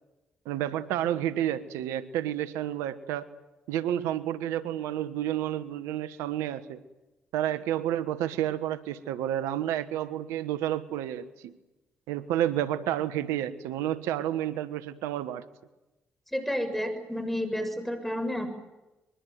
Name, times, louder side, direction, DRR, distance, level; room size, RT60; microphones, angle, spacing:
voice 1, 0.4-3.3 3.7-6.8 7.3-11.5 12.1-15.4, right 12 dB, 80° right, 14 dB, 1.3 m, -30 dB
voice 2, 16.3-18.5, equal, 5° left, 8 dB, 6.9 m, -30 dB
24.5 x 23.0 x 9.4 m, 1.0 s
hypercardioid pair, 50°, 5 cm